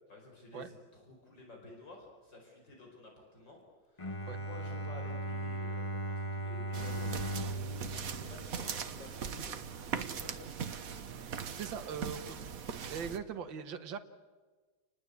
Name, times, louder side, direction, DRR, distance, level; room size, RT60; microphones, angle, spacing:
voice 1, 0.1-3.6 3.9-10.7 11.7-11.8, left 2 dB, 60° left, 1 dB, 5.5 m, -53 dB
Bowed string instrument, 4.0-9.2, right 1 dB, 20° left, 0.9 m, -38 dB
sound 1, 6.7-13.2, right 7 dB, 50° right, 1.4 m, -40 dB
voice 2, 11.5-12.4 12.9-14.0, right 7 dB, 70° right, 6 dB, 2.0 m, -40 dB
29.5 x 20.0 x 8.3 m, 1.3 s
omnidirectional pair, 2.2 m